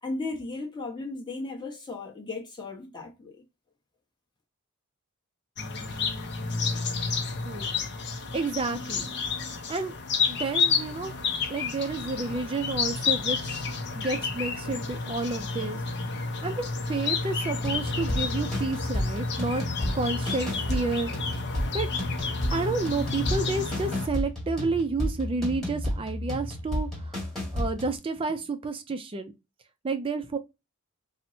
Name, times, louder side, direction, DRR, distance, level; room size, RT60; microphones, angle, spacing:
voice 1, 0.0-3.4, left 3 dB, 20° left, 1.0 m, -35 dB
sound 1, 5.6-24.1, left 4 dB, 50° left, 0.6 m, -30 dB
voice 2, 8.3-9.1 9.7-10.0 10.3-11.1 11.5-13.7 13.9-15.8 16.4-19.6 19.9-21.3 21.7-21.9 22.5-27.3 27.5-29.3 29.8-30.4, right 3 dB, 25° right, 0.3 m, -30 dB
sound 2, 17.6-28.0, left 1 dB, ahead, 1.4 m, -32 dB
4.3 x 2.0 x 2.6 m
head